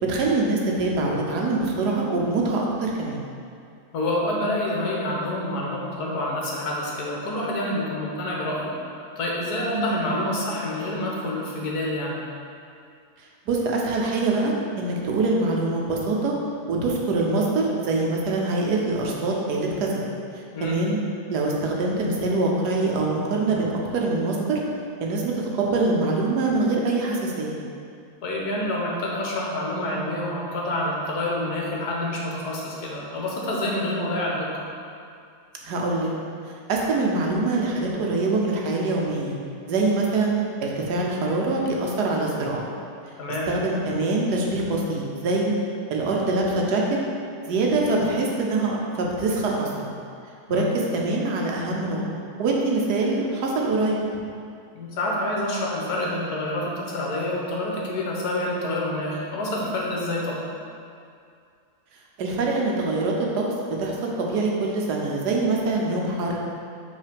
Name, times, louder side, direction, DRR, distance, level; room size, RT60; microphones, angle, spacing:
voice 1, 0.0-3.2 9.7-10.0 13.2-16.4 16.7-20.0 20.3-21.0 21.3-24.6 25.0-27.6 35.6-36.1 36.7-39.4 39.7-42.6 43.5-45.5 45.9-47.0 47.4-49.9 50.5-52.0 52.4-54.0 62.2-66.4, right 2 dB, 85° right, -1 dB, 1.4 m, -24 dB
voice 2, 3.9-12.2 20.5-20.8 28.2-34.6 43.2-43.5 50.5-50.7 54.7-60.4, left 1 dB, 75° left, -3 dB, 1.6 m, -27 dB
5.5 x 3.8 x 5.1 m, 2.4 s
omnidirectional pair, 1.7 m